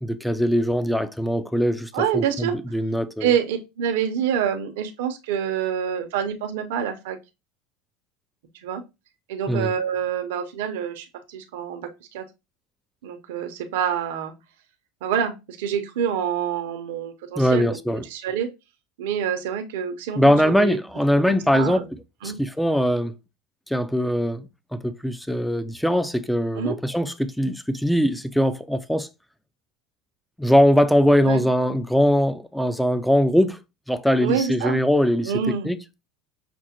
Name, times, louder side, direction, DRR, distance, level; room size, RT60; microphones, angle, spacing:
voice 1, 0.0-3.3 9.5-9.7 17.4-18.0 20.2-21.8 22.2-23.1 23.7-29.1 30.4-33.6 33.9-35.8, equal, ahead, 0.3 m, -21 dB
voice 2, 1.9-2.6 3.2-7.2 8.6-8.8 9.3-12.2 13.0-14.3 15.0-17.8 18.0-18.5 19.0-20.8 21.1-21.9 22.2-22.4 26.5-26.7 31.2-31.4 34.2-34.8 35.2-35.7, right 8 dB, 80° right, 0.6 m, -26 dB
5.9 x 2.1 x 2.8 m
supercardioid pair, 125°, 0 cm